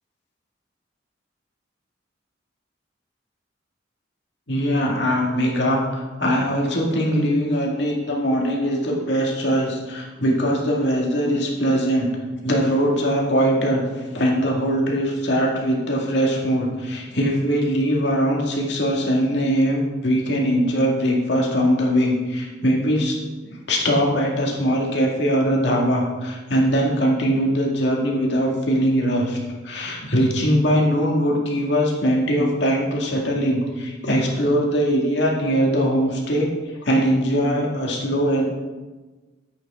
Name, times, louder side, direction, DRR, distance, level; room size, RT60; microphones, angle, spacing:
voice 1, 4.5-12.1 12.4-13.8 14.1-23.1 23.5-29.4 29.6-36.5 36.8-38.4, equal, 65° left, -1 dB, 2.0 m, -21 dB
10.0 x 8.4 x 3.7 m, 1.3 s
head